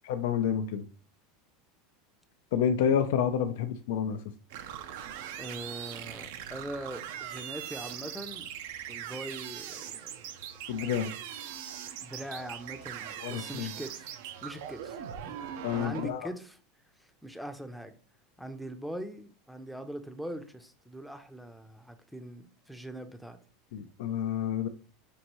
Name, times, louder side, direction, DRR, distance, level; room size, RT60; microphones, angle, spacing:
voice 1, 0.0-0.9 2.5-4.2 10.7-11.1 13.2-13.7 15.6-16.3 23.7-24.7, left 8 dB, 80° left, 0.4 m, -29 dB
sound 1, 4.5-16.1, right 9 dB, 75° right, 0.5 m, -41 dB
voice 2, 5.4-8.5 8.9-10.2 10.8-11.2 12.0-15.0 15.3-15.4 15.7-16.6 17.0-18.0 18.4-23.4, right 1 dB, ahead, 0.5 m, -42 dB
5.3 x 2.6 x 2.9 m
supercardioid pair, 140°, 0 cm